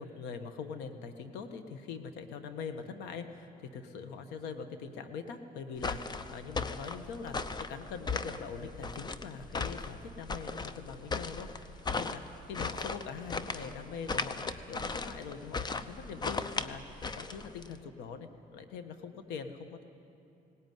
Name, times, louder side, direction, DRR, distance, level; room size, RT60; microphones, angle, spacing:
voice 1, 0.0-19.8, left 5 dB, 90° left, 8 dB, 1.5 m, -43 dB
sound 1, 5.8-17.8, left 4 dB, 25° left, 0.8 m, -37 dB
18.5 x 18.5 x 9.4 m, 2.8 s
cardioid pair, 110°, 17 cm